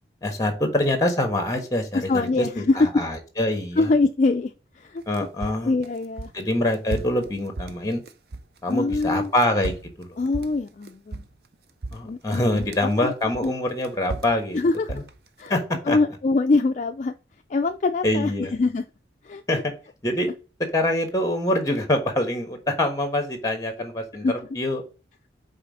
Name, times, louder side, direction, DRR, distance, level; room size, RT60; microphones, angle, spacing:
voice 1, 0.2-3.8 5.1-5.7 6.3-8.0 8.6-10.1 11.9-14.6 14.9-15.0 15.5-16.0 18.0-18.5 19.5-19.6 20.0-20.3 20.7-24.8, left 1 dB, 20° left, 5 dB, 1.3 m, -25 dB
voice 2, 1.9-3.0 3.7-5.0 5.6-6.3 8.7-9.3 10.2-11.2 12.1-13.1 13.4-13.5 14.5-14.9 15.4-15.5 15.9-17.1 17.5-18.8 19.2-19.6 24.2-24.3, left 3 dB, 40° left, 6 dB, 0.3 m, -24 dB
sound 1, 5.0-8.6 8.9-11.5 11.8-12.9 13.3-15.5, right 2 dB, 60° right, 0.5 m, -35 dB
5.5 x 4.2 x 5.3 m, 0.34 s
head